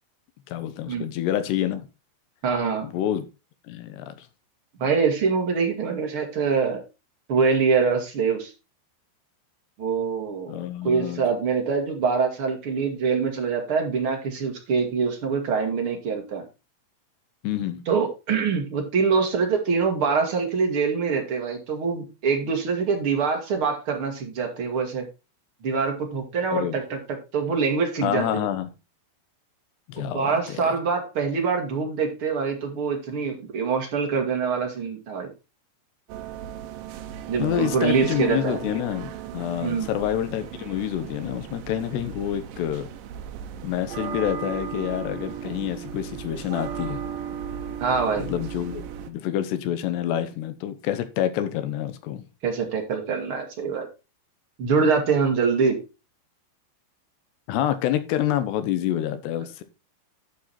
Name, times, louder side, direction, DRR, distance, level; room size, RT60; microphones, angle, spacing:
voice 1, 0.5-1.9 2.8-3.3 3.7-4.3 10.5-11.2 17.4-17.8 26.5-26.8 28.0-28.7 29.9-30.7 37.4-42.9 43.6-47.0 48.2-52.3 57.5-59.6, left 11 dB, 75° left, 3.0 m, -27 dB
voice 2, 2.4-2.9 4.8-6.8 7.3-8.5 9.8-16.4 17.9-25.0 25.6-27.0 27.3-28.4 30.0-35.3 37.3-38.6 39.6-39.9 47.8-48.3 52.4-53.9 54.6-55.8, right 5 dB, 45° right, 1.9 m, -24 dB
sound 1, 36.1-49.1, right 9 dB, 85° right, 1.9 m, -36 dB
11.5 x 5.6 x 4.2 m
omnidirectional pair, 5.3 m